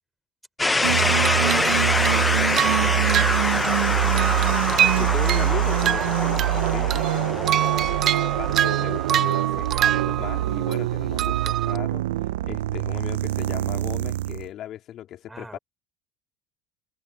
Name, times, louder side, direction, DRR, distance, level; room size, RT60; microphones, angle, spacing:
sound 1, 0.6-10.4, left 2 dB, 15° left, 0.8 m, -26 dB
voice 1, 0.8-4.2 15.3-15.6, right 2 dB, 10° right, 5.7 m, -40 dB
sound 2, 0.8-14.5, right 14 dB, 80° right, 0.6 m, -25 dB
sound 3, 1.0-3.9 4.2-6.6 6.9-10.7 11.2-11.8, right 11 dB, 50° right, 0.9 m, -26 dB
voice 2, 5.0-7.6 7.9-12.0 12.4-15.6, left 12 dB, 55° left, 3.3 m, -37 dB
hypercardioid pair, 75°, 0 cm